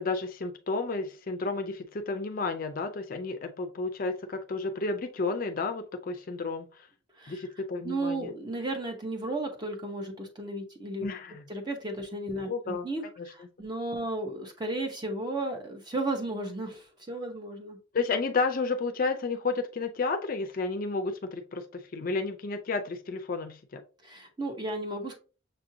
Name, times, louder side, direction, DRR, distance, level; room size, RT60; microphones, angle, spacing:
voice 1, 0.0-6.9 7.3-8.3 11.0-11.4 12.5-12.9 13.2-13.3 17.9-23.8, left 3 dB, 45° left, 7 dB, 0.4 m, -31 dB
voice 2, 7.2-7.5 7.8-11.1 11.5-17.8 24.0-25.2, right 2 dB, 20° right, 4 dB, 0.9 m, -34 dB
6.5 x 2.6 x 2.7 m, 0.35 s
head